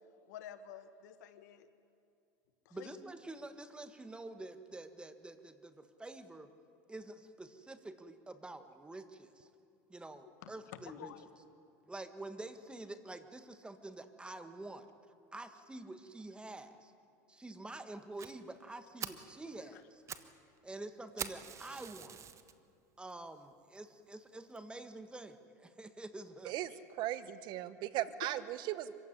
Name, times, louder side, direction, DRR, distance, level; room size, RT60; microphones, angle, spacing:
voice 1, 0.3-1.7 2.6-2.9 10.4-10.5 10.8-11.2, left 9 dB, 85° left, 10 dB, 1.6 m, -50 dB
voice 2, 2.7-6.5 6.9-9.5 9.9-11.1 11.9-14.9 15.3-16.9 17.3-20.0 20.6-22.2 23.0-26.5, right 2 dB, 10° right, 9 dB, 1.6 m, -48 dB
Fire, 18.2-18.3 18.7-18.8 19.0-19.3 19.8-20.3 20.6-20.7 21.2-22.5 23.1-23.2 23.8-23.9 24.1-24.2 24.6-24.7, right 7 dB, 35° right, 1.4 m, -44 dB
voice 3, 27.0-29.0, right 13 dB, 55° right, 14 dB, 1.1 m, -37 dB
25.5 x 16.0 x 9.9 m, 2.6 s
supercardioid pair, 105°, 9 cm